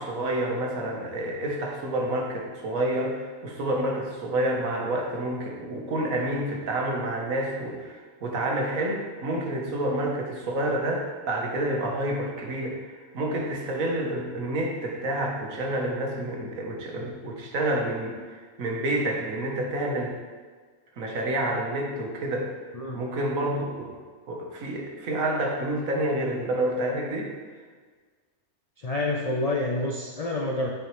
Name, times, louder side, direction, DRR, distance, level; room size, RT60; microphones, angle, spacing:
voice 1, 0.0-20.2 21.0-22.5 22.9-24.0 24.3-27.3, right 1 dB, 75° right, 0 dB, 1.4 m, -29 dB
voice 2, 28.8-30.7, left 2 dB, 65° left, -1 dB, 0.3 m, -28 dB
8.5 x 4.9 x 3.1 m, 1.5 s
omnidirectional pair, 1.4 m